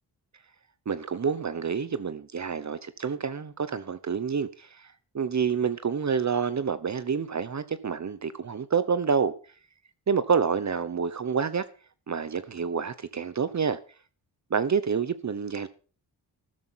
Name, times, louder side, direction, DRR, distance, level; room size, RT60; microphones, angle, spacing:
voice 1, 0.9-9.3 10.1-11.6 12.1-13.8 14.5-15.7, right 6 dB, 45° right, 1.1 m, -28 dB
13.0 x 11.0 x 5.8 m
cardioid pair, 75°, 40 cm